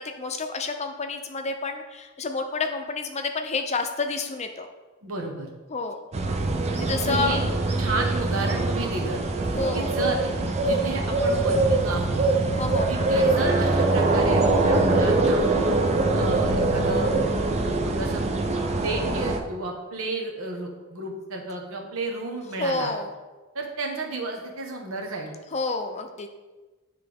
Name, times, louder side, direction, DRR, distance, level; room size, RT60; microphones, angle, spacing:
voice 1, 0.0-4.7 5.7-6.0 6.7-7.5 9.5-9.9 12.6-13.0 22.6-23.1 25.5-26.3, left 3 dB, 35° left, 6 dB, 0.5 m, -29 dB
voice 2, 5.0-5.5 7.0-7.4 7.8-9.2 9.7-10.2 10.6-12.2 12.9-15.5 16.1-17.1 17.8-18.2 18.7-22.9 23.5-25.3, right 2 dB, 90° right, 1 dB, 1.1 m, -32 dB
sound 1, 6.1-19.4, right 2 dB, 30° right, 0.5 m, -23 dB
9.7 x 3.4 x 3.5 m, 1.2 s
head